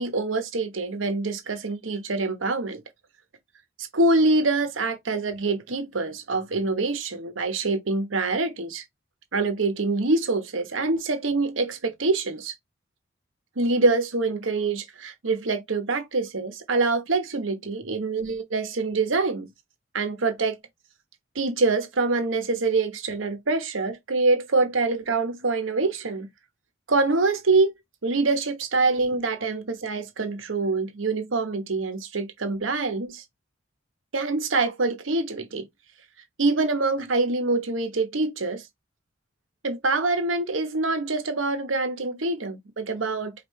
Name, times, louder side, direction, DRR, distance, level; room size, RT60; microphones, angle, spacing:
voice 1, 0.0-2.8 3.8-8.8 9.3-12.5 13.6-19.5 19.9-20.6 21.3-26.3 26.9-27.7 28.0-33.2 34.1-35.7 36.4-38.6 39.6-43.3, right 3 dB, 85° right, 1.0 m, -25 dB
5.2 x 2.5 x 3.1 m
head